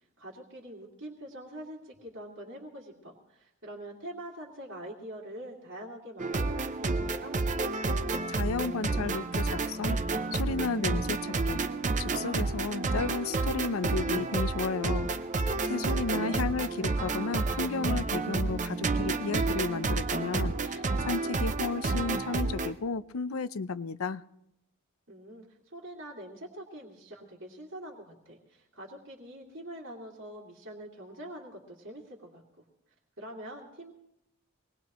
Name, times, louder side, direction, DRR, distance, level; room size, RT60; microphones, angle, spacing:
voice 1, 0.2-7.4 15.6-16.4 25.1-32.4 33.2-33.9, right 1 dB, 65° right, -6 dB, 2.4 m, -45 dB
sound 1, 6.2-22.7, right 3 dB, 35° right, 0.6 m, -30 dB
voice 2, 8.3-10.0 10.3-11.6 12.0-15.1 15.6-24.2, left 4 dB, 85° left, 15 dB, 0.6 m, -33 dB
24.0 x 19.5 x 3.1 m, 0.81 s
head